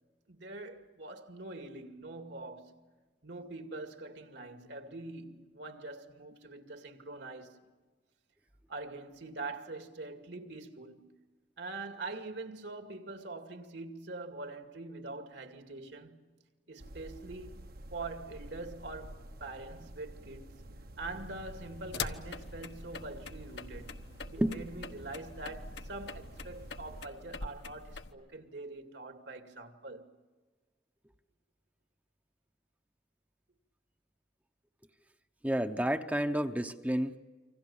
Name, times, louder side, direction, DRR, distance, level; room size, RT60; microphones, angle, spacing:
voice 1, 0.3-2.8 3.2-7.6 8.7-11.1 11.6-16.2 16.7-20.6 21.0-30.1, right 2 dB, 70° right, 2.4 m, -44 dB
sound 1, 16.8-27.1, right 1 dB, 55° right, 1.1 m, -49 dB
sound 2, 21.0-28.1, left 5 dB, 70° left, 1.2 m, -44 dB
voice 2, 24.4-24.7 35.4-37.2, right 1 dB, 10° right, 0.8 m, -30 dB
27.5 x 25.5 x 7.3 m
head